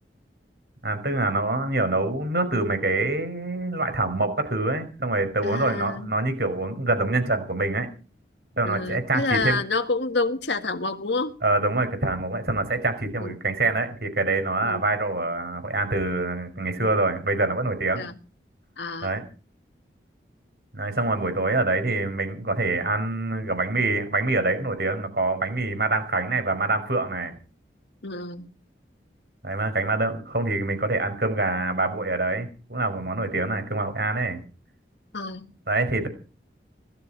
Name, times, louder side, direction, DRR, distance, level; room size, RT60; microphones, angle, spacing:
voice 1, 0.8-7.9 8.6-9.6 11.4-18.0 19.0-19.2 20.7-27.3 29.4-34.4 35.7-36.1, right 2 dB, 65° right, 9 dB, 5.1 m, -25 dB
voice 2, 5.4-6.1 8.6-11.3 13.2-13.3 14.6-14.9 17.9-18.2 18.8-19.2 28.0-28.5 35.1-35.5, left 3 dB, 85° left, 8 dB, 1.7 m, -28 dB
18.0 x 14.5 x 5.0 m, 0.36 s
head